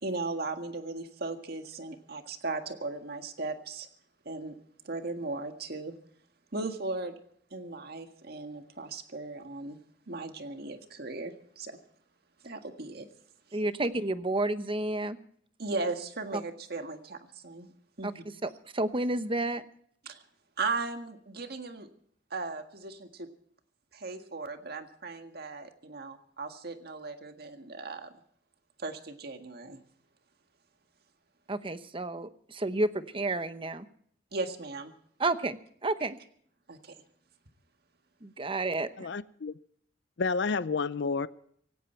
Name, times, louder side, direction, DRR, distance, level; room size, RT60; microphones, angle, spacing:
voice 1, 0.0-3.9 4.3-4.6 4.8-5.9 6.5-7.2 7.5-9.8 10.1-11.8 12.4-13.1 15.6-17.7 18.0-18.1 20.1-20.2 20.6-21.9 22.3-23.3 23.9-28.1 28.8-29.8 34.3-34.9 36.7-36.9, right 3 dB, 60° right, 1.8 m, -37 dB
voice 2, 13.5-15.2 18.0-18.1 18.4-19.6 31.5-33.8 35.2-35.6 35.8-36.2 38.2-39.1, right 2 dB, 30° right, 1.0 m, -30 dB
voice 3, 39.0-39.6 40.2-41.3, left 4 dB, 70° left, 0.6 m, -30 dB
17.5 x 17.0 x 4.5 m
head